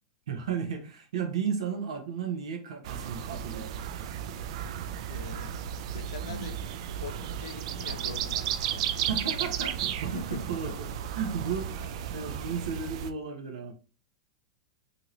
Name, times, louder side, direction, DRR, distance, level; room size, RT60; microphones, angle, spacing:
voice 1, 0.3-3.8 6.2-6.5 9.1-13.7, right 6 dB, 80° right, 0.7 m, -34 dB
sound 1, 2.8-13.1, right 9 dB, 65° right, 0.3 m, -34 dB
voice 2, 5.1-5.5 5.9-6.7 7.0-8.8 10.1-10.4 11.4-11.5, left 7 dB, 80° left, 0.5 m, -43 dB
2.9 x 2.6 x 2.9 m
hypercardioid pair, 120°, 3 cm